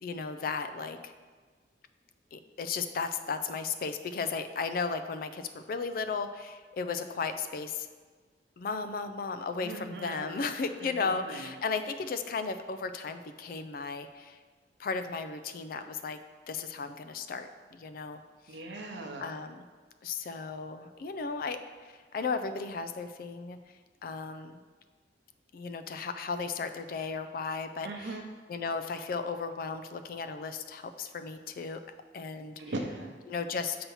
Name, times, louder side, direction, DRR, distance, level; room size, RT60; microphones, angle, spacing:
voice 1, 0.0-1.1 2.3-7.9 8.6-14.4 14.8-16.2 16.5-18.2 19.2-19.6 20.0-21.6 22.1-23.6 24.0-24.6 25.5-28.1 28.5-31.8 32.1-32.6 33.3-33.8, left 4 dB, 50° left, 9 dB, 0.3 m, -35 dB
voice 2, 9.6-10.5 10.8-11.5 18.5-19.2 27.8-28.3 32.6-33.1, right 2 dB, 80° right, 2 dB, 0.8 m, -39 dB
7.0 x 2.9 x 5.4 m, 1.5 s
head